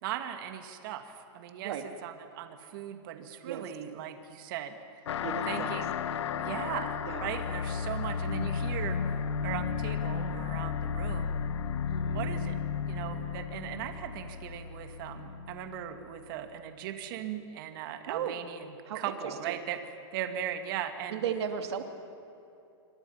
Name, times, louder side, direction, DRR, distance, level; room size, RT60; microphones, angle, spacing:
voice 1, 0.0-1.8 2.0-5.0 5.5-5.9 6.4-11.4 12.1-12.6 12.9-19.8 20.1-21.2, right 10 dB, 50° right, 7 dB, 2.3 m, -38 dB
sound 1, 5.1-16.0, left 6 dB, 85° left, 1.2 m, -33 dB
voice 2, 5.2-5.8 6.5-6.7 7.0-7.2 11.9-12.3 18.1-18.4 18.8-19.5 21.1-21.8, right 8 dB, 70° right, 6 dB, 2.8 m, -36 dB
28.5 x 25.5 x 5.9 m, 2.7 s
supercardioid pair, 155°, 14 cm